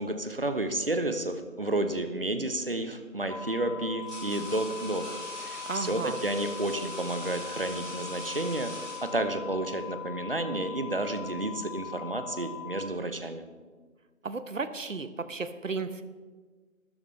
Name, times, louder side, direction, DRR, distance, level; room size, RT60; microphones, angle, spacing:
voice 1, 0.0-5.0 5.4-8.7 9.0-13.4, right 2 dB, 40° right, 9 dB, 0.9 m, -31 dB
sound 1, 2.4-2.7 3.5-9.5, equal, 5° right, 2.0 m, -43 dB
sound 2, 3.3-12.8, left 8 dB, 35° left, 0.8 m, -41 dB
voice 2, 5.7-6.2 14.2-16.0, right 4 dB, 65° right, 12 dB, 1.0 m, -34 dB
16.0 x 12.5 x 3.3 m, 1.5 s
figure-of-eight pair, 175°, 41 cm